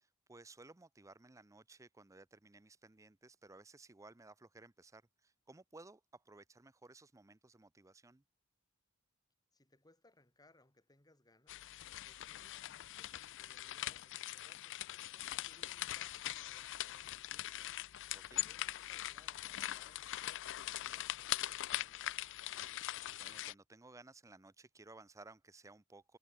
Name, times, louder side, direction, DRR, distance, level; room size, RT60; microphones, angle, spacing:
voice 1, 0.0-8.2 15.2-15.3 18.1-18.4 22.8-26.2, right 3 dB, 15° right, 0.6 m, -58 dB
voice 2, 9.5-11.7 12.0-17.7 18.3-22.2, left 2 dB, 20° left, 3.1 m, -69 dB
sound 1, 11.5-23.5, left 14 dB, 60° left, 0.5 m, -42 dB
head